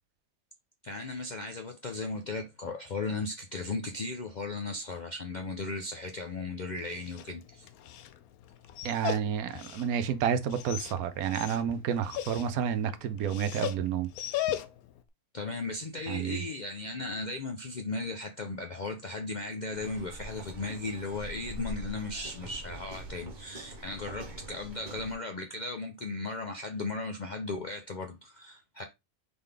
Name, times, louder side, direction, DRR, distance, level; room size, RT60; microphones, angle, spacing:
voice 1, 0.8-7.7 15.3-28.8, left 3 dB, 65° left, 0.4 m, -36 dB
Dog, 6.7-15.0, left 11 dB, 80° left, 1.0 m, -39 dB
voice 2, 8.8-14.1 16.1-16.4, right 8 dB, 85° right, 1.1 m, -30 dB
sound 1, 19.7-25.2, right 1 dB, 35° right, 1.1 m, -44 dB
4.0 x 3.7 x 3.3 m
omnidirectional pair, 1.5 m